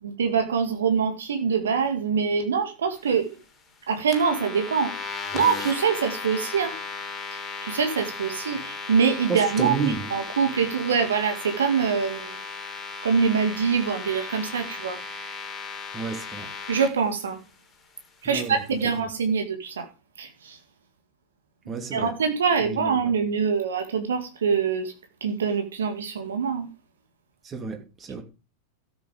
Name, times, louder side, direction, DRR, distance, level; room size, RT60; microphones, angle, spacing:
voice 1, 0.0-3.4 3.9-4.9 5.3-6.7 7.6-12.4 13.0-15.0 16.7-17.4 18.2-19.9 20.2-20.6 21.9-24.9 25.2-26.7, right 6 dB, 65° right, 2.2 m, -24 dB
sound 1, 4.1-16.9, left 4 dB, 25° left, 3.0 m, -36 dB
voice 2, 9.3-10.1 15.9-16.5 18.2-18.6 21.7-22.1 22.6-22.9 27.4-28.2, right 5 dB, 25° right, 3.0 m, -30 dB
13.0 x 8.3 x 5.2 m
figure-of-eight pair, 90°, 0 cm